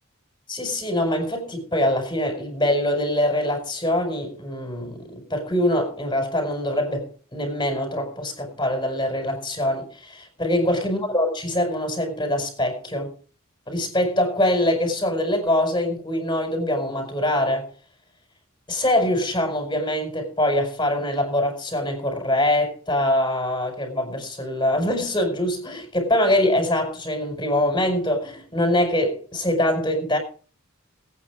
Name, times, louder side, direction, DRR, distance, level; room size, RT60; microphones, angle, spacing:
voice 1, 0.5-13.1 13.7-17.7 18.7-30.2, left 1 dB, 20° left, 5.0 m, -24 dB
20.5 x 9.2 x 4.9 m
head